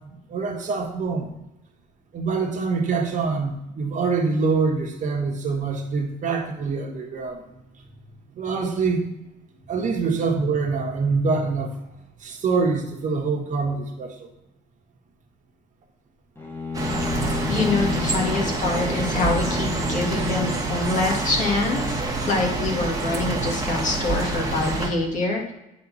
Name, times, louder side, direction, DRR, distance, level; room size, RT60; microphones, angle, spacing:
voice 1, 0.1-1.3 2.1-7.4 8.3-9.1 9.7-11.7 12.2-14.3, right 4 dB, 45° right, 2 dB, 1.4 m, -25 dB
Bowed string instrument, 16.4-21.2, left 3 dB, 15° left, 1.5 m, -31 dB
sound 1, 16.7-24.9, right 3 dB, 20° right, 1.4 m, -27 dB
voice 2, 17.5-22.0 22.3-25.5, left 3 dB, 45° left, 0 dB, 1.9 m, -25 dB
9.4 x 4.1 x 4.2 m, 0.91 s
cardioid pair, 110°, 17 cm